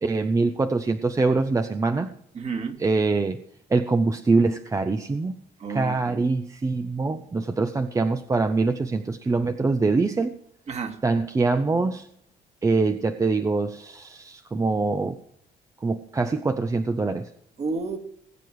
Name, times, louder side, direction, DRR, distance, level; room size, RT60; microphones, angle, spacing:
voice 1, 0.0-2.1 2.8-3.4 3.7-5.3 5.7-10.3 11.0-12.1 12.6-15.2 15.8-17.3, right 3 dB, 20° right, 8 dB, 0.8 m, -24 dB
voice 2, 2.4-2.8 5.6-6.3 10.7-11.0 17.6-18.0, right 4 dB, 40° right, 6 dB, 2.2 m, -31 dB
20.5 x 7.7 x 4.9 m, 0.69 s
cardioid pair, 110°, 17 cm